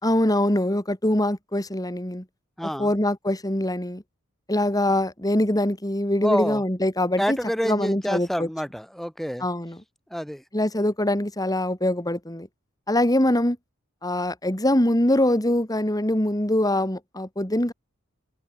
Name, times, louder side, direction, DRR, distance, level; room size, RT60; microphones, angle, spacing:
voice 1, 0.0-2.2 2.6-4.0 4.5-7.4 7.6-8.5 9.4-9.8 10.5-12.5 12.9-13.6 14.0-17.7, left 1 dB, 15° left, 3.5 m, -23 dB
voice 2, 2.6-2.9 6.2-6.6 7.2-9.4 10.1-10.4, equal, ahead, 4.3 m, -27 dB
head